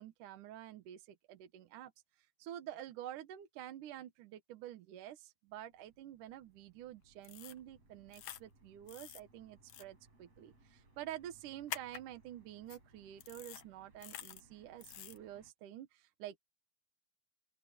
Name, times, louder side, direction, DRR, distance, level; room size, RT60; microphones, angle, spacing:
voice 1, 0.0-1.9 2.2-16.4, right 12 dB, 75° right, 2.6 m, -49 dB
sound 1, 5.5-15.5, right 2 dB, 45° right, 9.3 m, -67 dB
sound 2, 7.2-7.6 8.1-8.4 8.9-9.2 9.7-9.8 11.7-12.0 12.7-12.8 13.2-13.6 14.0-14.4 14.8-15.2, left 12 dB, 70° left, 2.5 m, -47 dB
open air
omnidirectional pair, 3.8 m